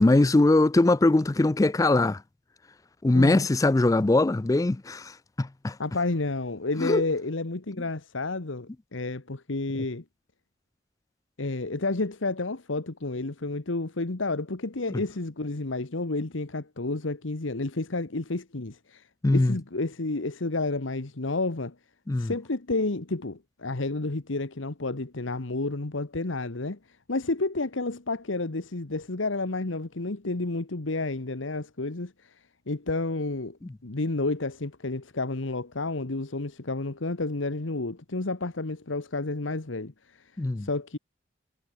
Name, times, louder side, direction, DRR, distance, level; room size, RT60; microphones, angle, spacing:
voice 1, 0.0-2.2 3.0-5.1 5.4-5.8 6.8-7.0 19.2-19.6 22.1-22.3 40.4-40.7, left 2 dB, 15° left, 0.4 m, -21 dB
voice 2, 3.1-3.5 5.8-10.0 11.4-21.7 22.2-40.3 40.6-41.0, left 2 dB, 75° left, 1.3 m, -31 dB
head